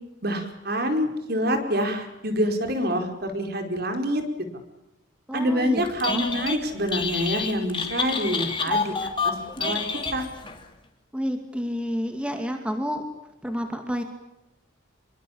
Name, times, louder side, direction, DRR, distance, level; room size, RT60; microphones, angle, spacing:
voice 1, 0.2-4.2 5.3-9.8 10.1-10.3, equal, 50° right, 6 dB, 4.9 m, -26 dB
voice 2, 5.3-6.3 11.1-13.0 13.4-14.0, equal, 5° right, 5 dB, 2.3 m, -29 dB
Telephone, 5.9-6.6 6.9-10.6, left 5 dB, 25° left, 3.2 m, -28 dB
27.0 x 23.5 x 8.7 m, 0.89 s
head